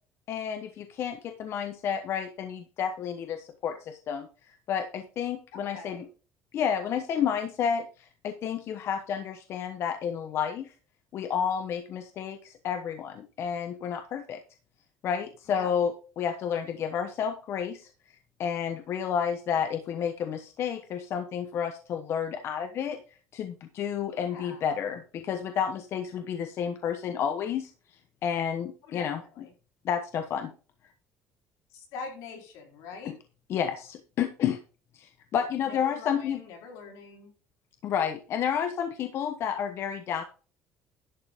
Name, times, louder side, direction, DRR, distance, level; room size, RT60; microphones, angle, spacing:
voice 1, 0.3-6.0 6.5-10.7 11.1-14.4 15.0-15.9 16.2-17.9 18.4-23.0 23.3-27.7 28.2-29.2 29.8-30.5 33.0-33.2 33.5-34.6 34.9-36.4 37.8-40.2, left 8 dB, 55° left, 7 dB, 1.1 m, -30 dB
voice 2, 5.5-6.1 15.5-15.7 24.1-24.7 28.9-29.5 31.7-33.1 35.6-37.3, left 4 dB, 85° left, 2 dB, 4.0 m, -43 dB
11.5 x 7.8 x 3.7 m, 0.37 s
cardioid pair, 135°, 5 cm